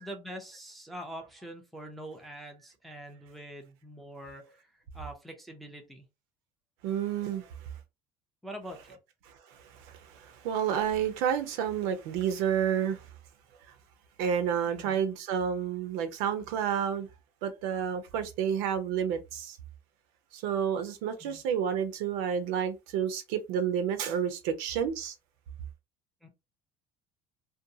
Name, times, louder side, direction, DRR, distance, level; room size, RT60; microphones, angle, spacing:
voice 1, 0.0-6.0 8.4-9.0 14.7-15.0 21.2-21.4 26.2-26.3, equal, ahead, 0.3 m, -44 dB
voice 2, 6.8-7.5 9.3-13.1 14.2-17.1 17.4-19.6 20.3-25.1, right 8 dB, 80° right, 0.6 m, -30 dB
2.6 x 2.2 x 2.7 m
cardioid pair, 180°, 14 cm